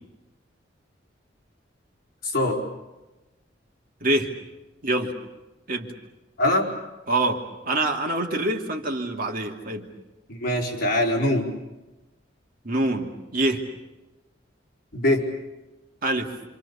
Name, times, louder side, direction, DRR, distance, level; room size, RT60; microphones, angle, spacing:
voice 1, 2.2-2.6 6.4-6.7 10.3-11.5 14.9-15.3, left 1 dB, 55° left, -2 dB, 5.0 m, -23 dB
voice 2, 4.0-4.3 4.8-5.1 5.7-5.9 7.1-9.9 12.6-13.6 16.0-16.3, right 2 dB, 50° right, 2 dB, 2.7 m, -25 dB
28.0 x 27.0 x 7.2 m, 1.1 s
head